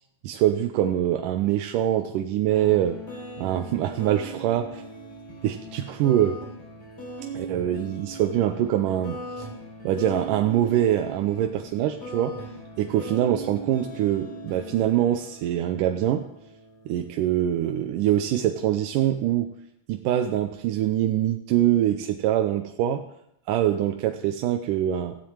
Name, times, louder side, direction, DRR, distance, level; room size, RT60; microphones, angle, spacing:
voice 1, 0.2-3.0 3.4-4.8 5.4-6.4 7.3-9.5 9.8-12.3 12.8-16.3 16.9-19.5 19.9-23.0 23.5-25.2, right 11 dB, 85° right, 5 dB, 2.3 m, -24 dB
sound 1, 2.5-17.6, right 1 dB, 30° left, 4.7 m, -39 dB
15.0 x 7.6 x 8.7 m, 0.79 s
omnidirectional pair, 3.7 m